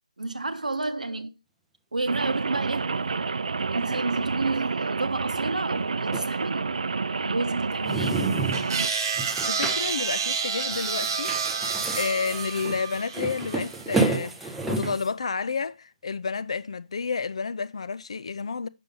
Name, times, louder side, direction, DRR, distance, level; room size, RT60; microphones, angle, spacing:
voice 1, 0.2-1.3 1.9-3.0 3.7-6.8 7.2-8.3, right 3 dB, 90° right, 0.9 m, -30 dB
Rain, 2.1-8.9, right 4 dB, 65° right, 0.4 m, -29 dB
sound 1, 6.1-6.3 7.7-8.7 9.1-10.0 10.3-10.4 10.7-15.1, right 3 dB, 5° right, 0.5 m, -30 dB
sound 2, 8.5-13.9, right 6 dB, 30° right, 1.1 m, -29 dB
voice 2, 9.2-11.3 11.6-18.7, left 5 dB, 50° left, 0.4 m, -31 dB
6.7 x 6.2 x 3.7 m
figure-of-eight pair, 160°, 4 cm